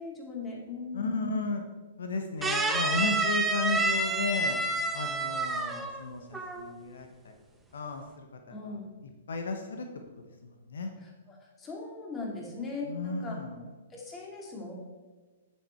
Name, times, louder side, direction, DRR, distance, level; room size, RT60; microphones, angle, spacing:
voice 1, 0.0-1.4 8.5-8.9 11.0-13.4 13.9-14.7, left 4 dB, 20° left, -2 dB, 2.5 m, -39 dB
voice 2, 0.9-1.6 2.0-4.6 4.9-7.1 7.7-8.7 9.3-9.9 10.2-10.3 10.7-10.9 12.9-13.6, left 3 dB, 75° left, 5 dB, 1.0 m, -34 dB
sound 1, 2.4-6.0 6.3-6.7, right 2 dB, 10° right, 0.9 m, -29 dB
8.9 x 7.7 x 4.5 m, 1.3 s
hypercardioid pair, 125°, 0 cm